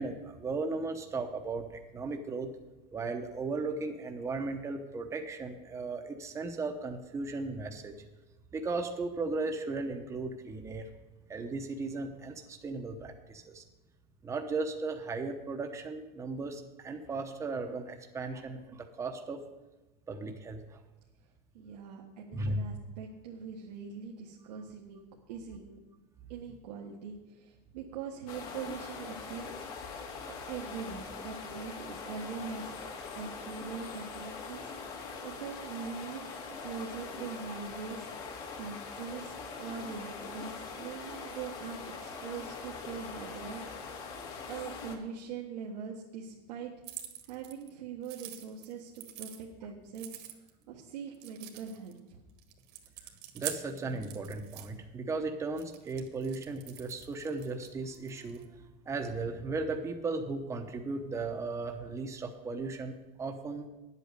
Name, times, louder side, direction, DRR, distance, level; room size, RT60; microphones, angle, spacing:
voice 1, 0.0-2.5 2.9-7.9 8.5-10.9 11.3-13.6 14.2-19.4 20.1-20.8 22.3-22.6 53.3-62.9 63.2-63.6, right 3 dB, 15° right, 3 dB, 0.9 m, -36 dB
voice 2, 21.5-25.0 25.3-25.8 26.3-29.7 30.5-32.7 33.1-36.3 36.6-43.7 44.5-46.7 47.3-50.2 50.7-52.2, right 6 dB, 90° right, -2 dB, 1.5 m, -42 dB
sound 1, 28.3-45.0, left 5 dB, 65° left, 2.2 m, -42 dB
sound 2, 46.8-47.7 48.0-49.4 49.9-50.6 51.1-52.0 52.4-54.7 55.6-58.5, right 12 dB, 70° right, 1.7 m, -44 dB
10.0 x 8.2 x 6.7 m, 1.1 s
supercardioid pair, 150°, 21 cm